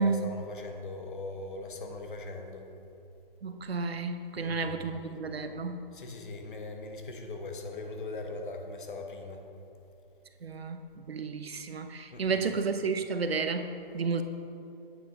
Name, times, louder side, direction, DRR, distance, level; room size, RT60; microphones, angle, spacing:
voice 1, 0.0-2.6 4.4-5.2 5.9-9.4 12.1-12.4, left 2 dB, 55° left, 4 dB, 1.1 m, -40 dB
voice 2, 3.4-5.8 10.4-14.2, right 4 dB, 80° right, 8 dB, 0.8 m, -32 dB
8.4 x 6.4 x 4.6 m, 2.8 s
figure-of-eight pair, 150°, 30 cm